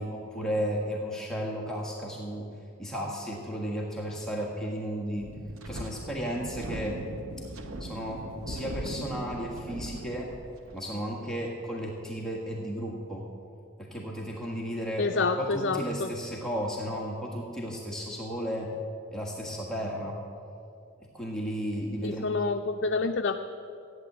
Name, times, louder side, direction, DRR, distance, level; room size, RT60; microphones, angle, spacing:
voice 1, 0.0-2.4 2.8-5.3 5.6-7.0 7.8-10.3 10.7-13.2 13.9-18.7 19.1-20.1 21.1-22.3, equal, 5° left, -3 dB, 1.6 m, -34 dB
Wind, 5.2-10.8, right 1 dB, 70° right, 1.0 m, -39 dB
voice 2, 15.0-16.1 22.0-23.4, left 4 dB, 55° left, 4 dB, 0.5 m, -28 dB
15.0 x 9.5 x 7.9 m, 2.5 s
head